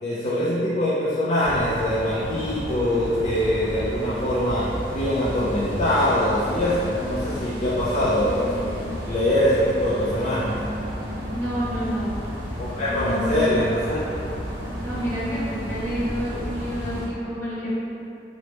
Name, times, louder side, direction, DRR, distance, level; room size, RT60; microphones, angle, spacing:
voice 1, 0.0-8.7 9.0-10.5 12.6-14.1, left 1 dB, 40° left, -9 dB, 0.3 m, -23 dB
sound 1, 1.4-17.1, equal, 85° right, 0.7 m, -32 dB
voice 2, 8.3-9.0 11.3-12.2 12.8-13.5 14.8-17.8, equal, 15° left, -14 dB, 1.1 m, -29 dB
2.9 x 2.0 x 3.2 m, 2.7 s
head